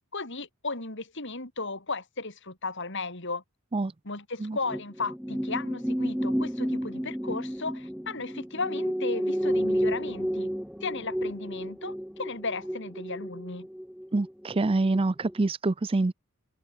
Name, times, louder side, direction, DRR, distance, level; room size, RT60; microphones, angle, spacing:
voice 1, 0.1-3.4 4.0-10.5 10.8-13.7, left 3 dB, 55° left, 4.3 m, -35 dB
sound 1, 4.7-15.0 15.2-15.5, equal, 5° right, 2.4 m, -31 dB
voice 2, 14.1-16.1, right 2 dB, 25° right, 0.4 m, -26 dB
head